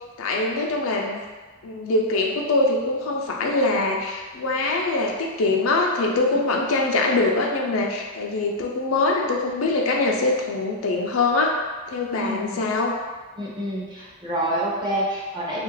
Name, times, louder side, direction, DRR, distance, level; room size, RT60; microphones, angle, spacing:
voice 1, 0.2-1.2 1.6-11.5 11.9-12.9, left 2 dB, 70° left, 0 dB, 0.4 m, -23 dB
voice 2, 12.2-12.6 13.4-15.6, right 1 dB, 20° right, -5 dB, 0.6 m, -27 dB
2.7 x 2.4 x 3.1 m, 1.3 s
head